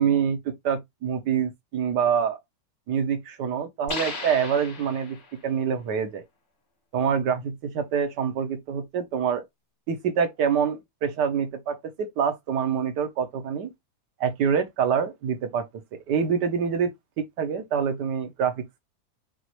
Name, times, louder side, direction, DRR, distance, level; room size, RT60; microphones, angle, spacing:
voice 1, 0.0-2.4 2.9-5.2 5.4-6.2 6.9-9.4 9.9-13.7 14.2-15.6 16.1-16.9 17.4-18.8, right 7 dB, 70° right, 1.4 m, -26 dB
sound 1, 3.9-5.4, left 3 dB, 70° left, 2.5 m, -35 dB
6.2 x 2.5 x 3.0 m
omnidirectional pair, 2.0 m